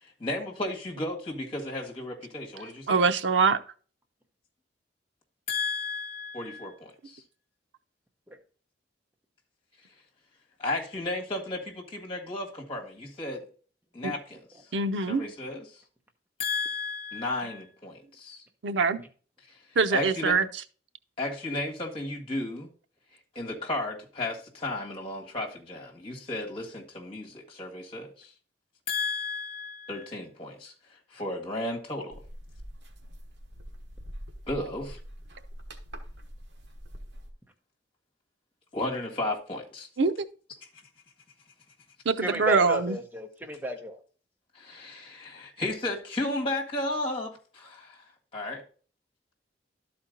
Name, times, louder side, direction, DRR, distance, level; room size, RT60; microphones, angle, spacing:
voice 1, 0.0-3.0 5.5-7.2 10.6-13.5 13.9-14.4 15.1-15.8 16.4-18.4 19.5-19.6 19.9-20.3 21.2-22.7 23.4-28.3 28.9-30.7 31.1-32.2 34.5-35.0 38.7-39.9 44.5-48.0 48.3-48.6, left 2 dB, 30° left, 1.8 m, -34 dB
voice 2, 2.9-3.6 14.0-14.1 14.7-15.2 18.6-19.0 19.8-20.5 40.0-40.1 42.1-43.0, right 4 dB, 90° right, 0.6 m, -23 dB
sound 1, 32.1-37.3, equal, 75° right, 1.2 m, -44 dB
voice 3, 42.2-44.0, equal, 10° right, 0.9 m, -32 dB
12.0 x 4.3 x 3.9 m
head